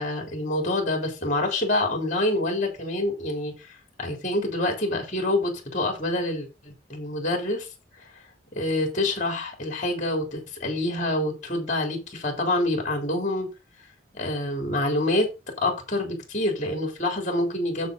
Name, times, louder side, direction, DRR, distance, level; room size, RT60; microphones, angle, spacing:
voice 1, 0.0-7.7 8.0-8.1 8.6-13.5 14.1-15.3 15.6-17.9, left 1 dB, 35° left, 3 dB, 3.9 m, -26 dB
9.2 x 7.9 x 4.0 m, 0.28 s
head